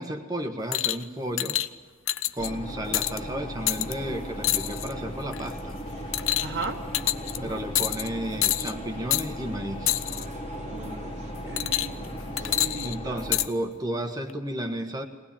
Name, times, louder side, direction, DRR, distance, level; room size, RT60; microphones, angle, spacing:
voice 1, 0.0-1.6 2.3-5.8 7.4-10.0 12.8-15.0, right 1 dB, 20° right, 5 dB, 1.4 m, -33 dB
sound 1, 0.7-1.0 1.4-1.7 2.1-2.5 2.9-3.2 3.7-3.9 4.4-4.9 5.3-5.6 6.1-6.6 6.9-7.4 7.7-8.1 8.4-8.7 9.1-9.3 9.9-10.2 11.6-12.1 12.4-13.5 14.3-14.4, left 13 dB, 85° left, 0.7 m, -26 dB
sound 2, 2.4-13.5, equal, 30° left, 1.8 m, -37 dB
sound 3, 3.2-12.6, right 2 dB, 35° right, 1.2 m, -47 dB
voice 2, 6.4-6.8 7.4-7.6 10.6-13.2, right 3 dB, 65° right, -1 dB, 1.5 m, -38 dB
22.0 x 19.0 x 8.8 m, 1.5 s
head